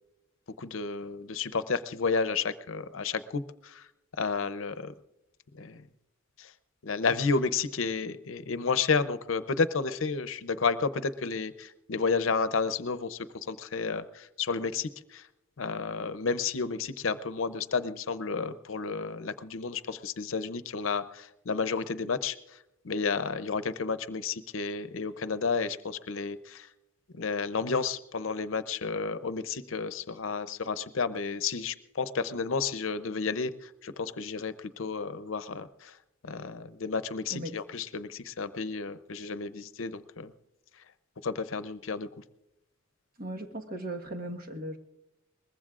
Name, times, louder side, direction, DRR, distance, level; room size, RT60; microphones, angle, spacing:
voice 1, 0.6-3.9 4.2-4.9 5.5-5.9 6.4-6.5 6.8-15.2 15.6-22.6 22.8-26.7 27.1-36.0 36.2-40.3 41.2-42.1, left 4 dB, 75° left, 13 dB, 0.7 m, -31 dB
voice 2, 43.2-44.8, right 1 dB, 50° right, 4 dB, 1.5 m, -37 dB
22.5 x 20.5 x 2.5 m, 0.89 s
head